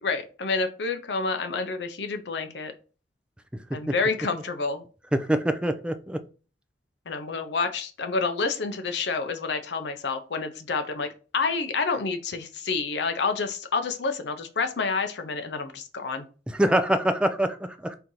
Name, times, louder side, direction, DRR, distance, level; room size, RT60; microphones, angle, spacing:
voice 1, 0.0-2.7 3.7-4.8 7.1-11.1 11.3-16.2, left 4 dB, 70° left, 7 dB, 0.6 m, -28 dB
voice 2, 5.1-6.2 16.5-17.9, right 1 dB, 5° right, 8 dB, 0.4 m, -24 dB
4.4 x 2.7 x 3.8 m, 0.36 s
head